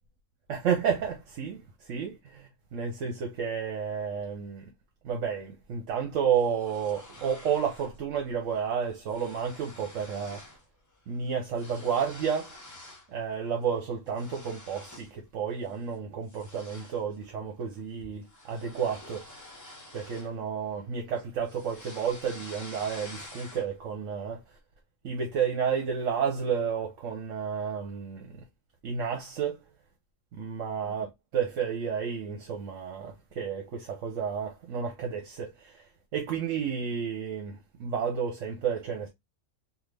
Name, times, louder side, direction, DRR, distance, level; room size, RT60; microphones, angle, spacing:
voice 1, 0.5-4.6 5.0-10.4 11.1-12.6 13.1-19.2 19.9-24.6 25.0-28.4 28.8-29.6 30.4-31.1 31.3-39.1, right 7 dB, 70° right, 1.1 m, -31 dB
sound 1, 6.3-8.0 8.3-8.6 8.8-10.6 10.9-13.1 13.5-15.2 15.6-15.8 16.3-20.8 21.2-23.9, left 2 dB, 20° left, 0.6 m, -49 dB
3.5 x 2.3 x 3.2 m
omnidirectional pair, 1.4 m